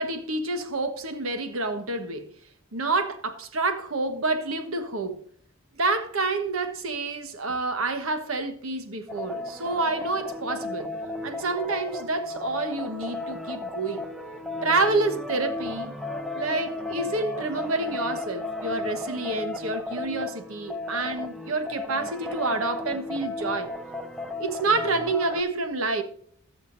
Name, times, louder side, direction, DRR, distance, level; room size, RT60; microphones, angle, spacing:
voice 1, 0.0-2.3 2.7-5.2 5.7-10.9 11.2-14.1 14.6-15.9 16.3-23.7 24.4-26.0, right 3 dB, 80° right, 1.3 m, -28 dB
sound 1, 9.1-25.4, left 2 dB, ahead, 0.8 m, -34 dB
19.0 x 6.9 x 2.6 m
head